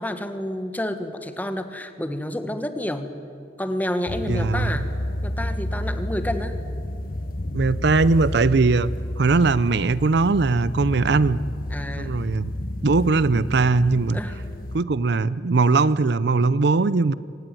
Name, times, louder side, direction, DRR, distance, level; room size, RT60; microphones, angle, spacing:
voice 1, 0.0-3.1 3.6-4.9 5.2-6.6 11.7-12.1 14.1-14.4, left 1 dB, 10° left, 9 dB, 1.4 m, -29 dB
sound 1, 4.1-14.8, left 1 dB, 50° left, 1.1 m, -30 dB
voice 2, 4.3-4.7 7.5-8.9 9.2-11.4 12.0-12.5 12.8-14.2 14.7-17.1, right 3 dB, 60° right, 17 dB, 0.6 m, -20 dB
25.0 x 19.0 x 9.2 m, 2.4 s
head